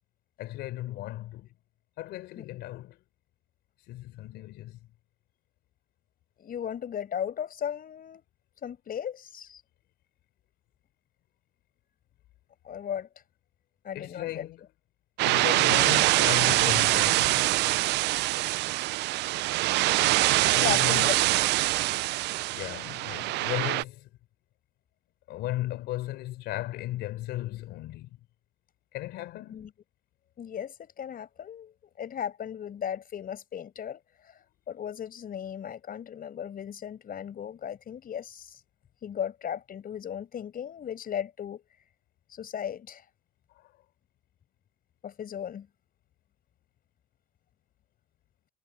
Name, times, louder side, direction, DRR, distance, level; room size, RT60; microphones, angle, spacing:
voice 1, 0.4-1.5 2.0-3.0 3.9-4.8 13.9-14.6 15.2-17.4 20.5-21.1 22.5-24.1 25.3-28.2 28.9-29.7 43.5-43.7, left 15 dB, 90° left, 4.1 m, -36 dB
voice 2, 6.4-8.2 8.6-9.6 12.6-13.1 13.8-14.5 20.6-21.5 29.5-29.7 30.4-34.0 34.7-38.6 39.0-41.6 42.3-43.0 45.0-45.7, left 9 dB, 60° left, 6.7 m, -36 dB
sound 1, 15.2-23.8, right 19 dB, 90° right, 0.4 m, -24 dB
cardioid pair, 85°, 17 cm